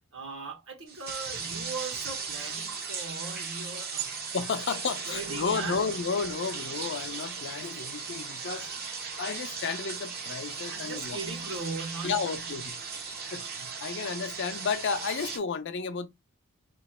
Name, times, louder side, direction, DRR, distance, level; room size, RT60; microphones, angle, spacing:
voice 1, 0.1-4.2 5.1-5.8 7.6-7.9 8.6-8.8 10.7-12.4, right 4 dB, 65° right, 1.5 m, -39 dB
sound 1, 0.9-15.4, right 5 dB, 45° right, 0.9 m, -37 dB
voice 2, 4.3-8.7 9.2-11.2 12.0-16.1, left 5 dB, 55° left, 0.5 m, -32 dB
3.0 x 2.4 x 4.2 m
head